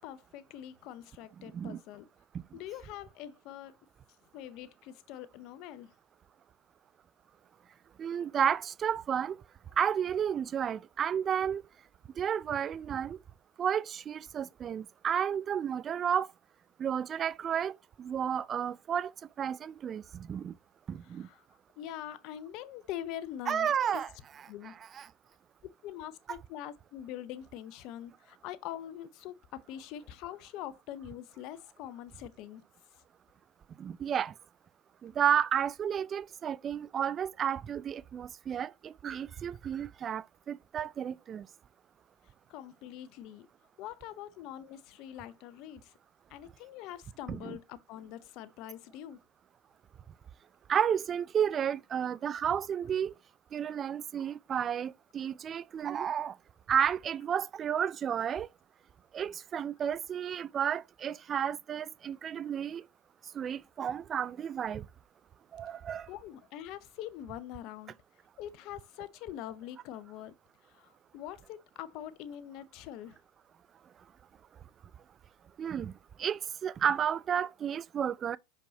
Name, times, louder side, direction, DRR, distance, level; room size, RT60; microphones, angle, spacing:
voice 1, 0.0-2.1 2.5-3.8 4.3-5.9 21.0-21.4 21.8-23.7 24.5-24.8 25.8-32.6 42.5-43.5 43.8-45.9 46.3-49.2 66.1-67.9 68.4-70.3 70.7-73.2, left 11 dB, 60° left, 0.7 m, -44 dB
voice 2, 1.4-1.8 2.3-2.4 8.0-9.4 9.8-11.6 12.2-13.2 13.6-16.3 16.8-17.7 18.0-20.5 20.9-21.3 23.5-24.1 24.9-25.1 33.8-34.3 35.0-41.5 47.3-47.6 50.7-53.1 53.5-56.4 56.7-58.5 59.1-62.9 63.3-64.9 65.5-66.1 75.6-75.9 76.2-78.4, right 8 dB, 35° right, 0.3 m, -32 dB
6.2 x 5.3 x 2.8 m
hypercardioid pair, 95°, 0 cm